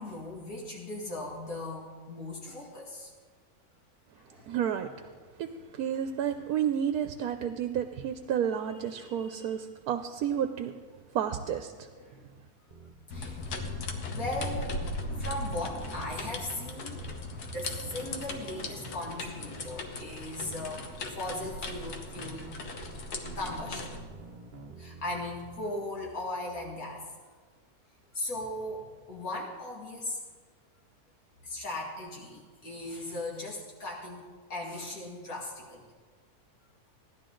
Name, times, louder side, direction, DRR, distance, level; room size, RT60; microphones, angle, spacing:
voice 1, 0.0-3.1 4.1-4.5 8.7-9.6 12.0-12.2 13.1-14.9 15.2-17.0 17.5-22.6 23.4-23.9 24.8-27.1 28.1-30.2 31.4-35.9, left 2 dB, 70° left, -2 dB, 2.4 m, -38 dB
voice 2, 4.5-4.9 5.4-5.5 5.8-10.7 11.1-11.7, right 9 dB, 80° right, 8 dB, 1.1 m, -31 dB
sound 1, 12.7-12.9 13.5-13.8 14.4-16.4 17.0-17.2 17.8-19.8 20.4-20.7 21.3-21.5 22.1-22.4 22.8-25.6, right 3 dB, 40° right, 0.8 m, -48 dB
sound 2, 13.1-24.0, left 2 dB, 85° left, 1.6 m, -38 dB
16.5 x 11.5 x 3.8 m, 1.5 s
omnidirectional pair, 1.6 m